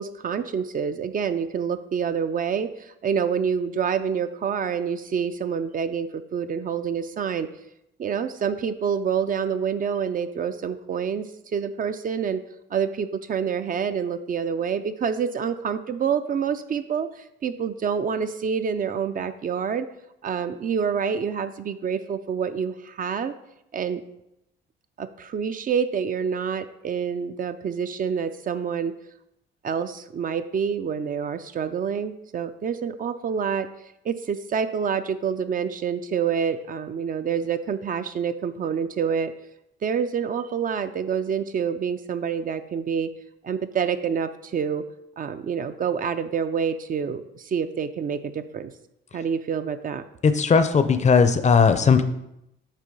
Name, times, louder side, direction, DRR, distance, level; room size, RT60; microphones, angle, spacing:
voice 1, 0.0-7.5 8.0-12.4 12.7-19.9 20.2-23.3 23.7-24.0 25.0-28.9 29.6-33.7 34.0-39.3 39.8-43.1 43.4-44.9 45.2-48.7 49.1-50.0, right 7 dB, 45° right, 10 dB, 0.5 m, -27 dB
voice 2, 50.2-52.0, left 5 dB, 35° left, 10 dB, 0.6 m, -17 dB
8.3 x 3.0 x 5.2 m, 0.83 s
cardioid pair, 90°, 20 cm